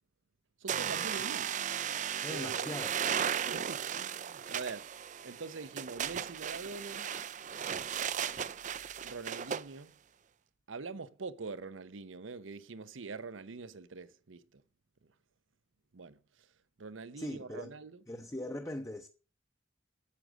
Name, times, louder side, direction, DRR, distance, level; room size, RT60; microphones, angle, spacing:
voice 1, 0.6-1.6 2.2-2.7 3.3-4.9 5.2-7.1 9.0-10.0 10.7-14.6 15.9-16.5 16.8-18.0, right 4 dB, 90° right, 0.8 m, -44 dB
sound 1, 0.7-9.6, right 8 dB, 40° right, 0.4 m, -36 dB
voice 2, 2.2-2.9 3.2-3.4 17.2-17.7 18.1-19.1, left 1 dB, 15° left, 0.7 m, -40 dB
8.5 x 7.8 x 6.3 m
head